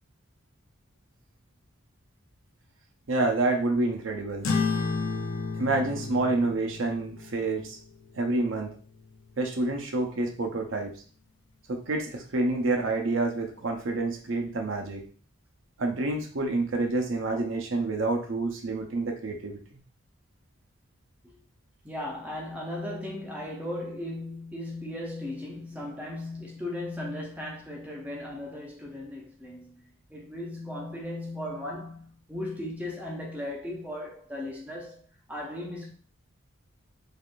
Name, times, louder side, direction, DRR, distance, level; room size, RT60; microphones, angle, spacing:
voice 1, 3.1-4.5 5.6-7.8 8.2-8.7 9.4-10.9 11.7-15.0 15.8-19.8, right 2 dB, 70° right, 0.6 m, -28 dB
sound 1, 4.4-9.3, left 4 dB, 85° left, 0.6 m, -33 dB
voice 2, 21.8-35.0 35.3-35.9, left 1 dB, 5° right, 0.5 m, -37 dB
3.4 x 2.4 x 2.5 m
head